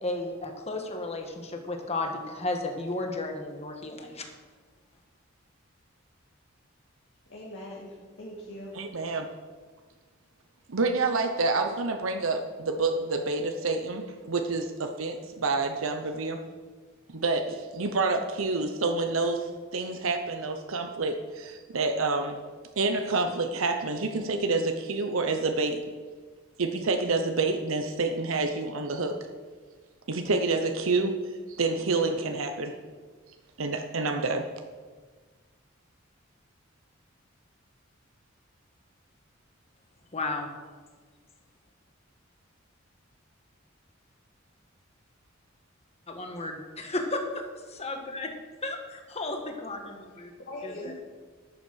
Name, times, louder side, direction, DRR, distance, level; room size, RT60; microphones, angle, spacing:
voice 1, 0.0-4.2 40.1-40.5 46.1-48.3 48.6-48.8 49.2-50.3 50.6-50.9, left 2 dB, 30° left, 4 dB, 1.4 m, -33 dB
voice 2, 7.3-8.7 50.4-51.2, left 1 dB, 60° left, -5 dB, 2.2 m, -41 dB
voice 3, 8.7-9.3 10.7-16.4 17.1-22.4 22.8-25.8 26.6-29.2 30.1-31.2 31.5-32.7 33.6-34.5, right 3 dB, 80° right, 5 dB, 0.8 m, -28 dB
11.5 x 7.1 x 6.3 m, 1.4 s
head